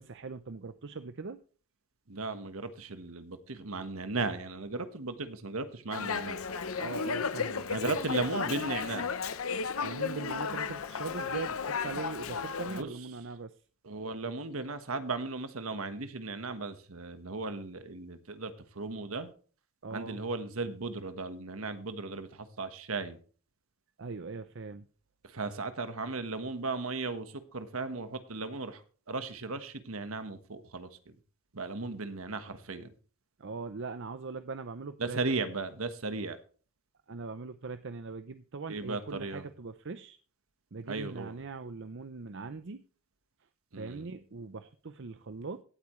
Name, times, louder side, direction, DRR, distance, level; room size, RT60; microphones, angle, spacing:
voice 1, 0.0-1.4 6.8-7.7 9.8-13.5 19.8-20.2 24.0-24.8 33.4-35.4 37.1-40.2 40.7-42.8 43.8-45.6, right 4 dB, 60° right, 11 dB, 0.6 m, -41 dB
voice 2, 2.1-6.4 7.7-9.1 12.7-12.9 13.9-19.3 19.9-23.2 25.3-27.2 27.5-28.8 29.1-30.9 31.5-32.9 35.0-36.4 38.7-39.4 40.9-41.3 43.7-44.1, right 3 dB, 75° right, 10 dB, 1.4 m, -36 dB
Dog, 5.9-12.8, left 5 dB, 75° left, 0.8 m, -34 dB
17.0 x 8.4 x 3.2 m, 0.40 s
head